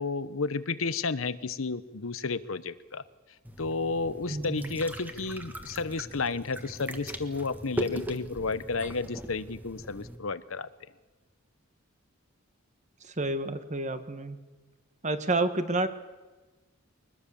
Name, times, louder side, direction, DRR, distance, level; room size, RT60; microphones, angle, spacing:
voice 1, 0.0-3.0 3.6-10.7, left 4 dB, 80° left, 14 dB, 1.0 m, -32 dB
sound 1, 3.4-10.2, equal, 10° right, 1.6 m, -40 dB
voice 2, 4.3-4.8 13.0-14.4 15.0-15.9, right 2 dB, 35° right, 10 dB, 1.5 m, -29 dB
23.5 x 21.0 x 7.1 m, 1.3 s
head